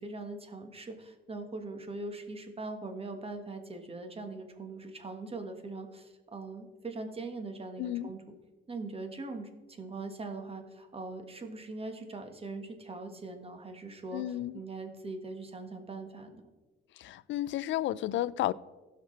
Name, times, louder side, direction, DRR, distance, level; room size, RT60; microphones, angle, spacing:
voice 1, 0.0-8.2 8.7-16.4, right 3 dB, 30° right, 1.5 m, -41 dB
voice 2, 7.8-8.1 14.1-14.6 17.0-18.5, left 13 dB, 70° left, 0.4 m, -32 dB
16.5 x 5.9 x 3.3 m
cardioid pair, 90°, 20 cm